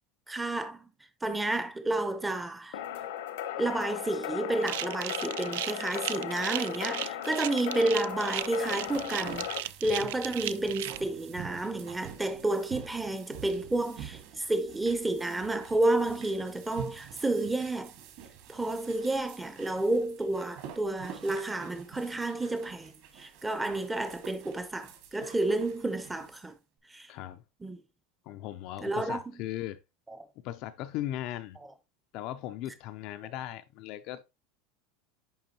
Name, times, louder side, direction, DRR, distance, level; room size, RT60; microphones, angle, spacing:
voice 1, 0.3-0.9 1.2-2.8 3.6-17.9 18.5-26.5 26.9-27.1 27.6-27.8 28.8-29.4 30.1-30.2, right 2 dB, 5° right, 0.6 m, -31 dB
sound 1, 2.7-9.6, left 11 dB, 75° left, 1.0 m, -37 dB
sound 2, 4.6-11.0, right 15 dB, 75° right, 0.3 m, -36 dB
sound 3, 8.1-26.5, right 8 dB, 50° right, 1.6 m, -47 dB
voice 2, 27.1-27.4 28.3-29.8 30.4-31.6 32.1-34.2, left 13 dB, 40° left, 0.4 m, -38 dB
10.0 x 3.5 x 2.9 m
supercardioid pair, 180°, 0 cm